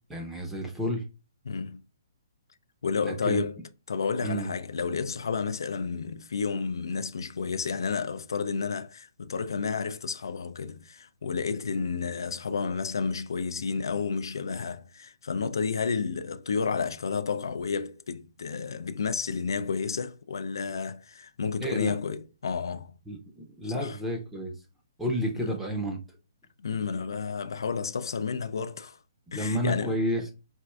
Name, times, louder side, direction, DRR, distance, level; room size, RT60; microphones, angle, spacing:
voice 1, 0.1-1.0 3.0-3.5 4.2-4.5 21.6-22.0 23.1-24.5 25.0-26.0 29.3-30.3, equal, 5° right, 0.5 m, -30 dB
voice 2, 1.5-1.8 2.8-3.6 3.9-23.0 23.6-24.0 25.4-25.5 26.6-29.0 29.3-30.0, left 5 dB, 90° left, 0.3 m, -31 dB
4.2 x 2.5 x 2.2 m
hypercardioid pair, 170°, 2 cm